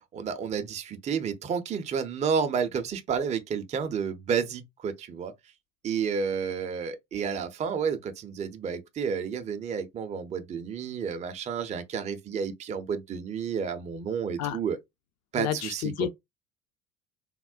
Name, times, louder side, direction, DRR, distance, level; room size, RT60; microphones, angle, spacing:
voice 1, 0.1-5.3 5.8-14.8 15.3-16.1, right 6 dB, 20° right, 0.4 m, -31 dB
voice 2, 15.4-16.1, left 11 dB, 45° left, 0.5 m, -30 dB
3.5 x 2.1 x 2.3 m
figure-of-eight pair, 60°, 38 cm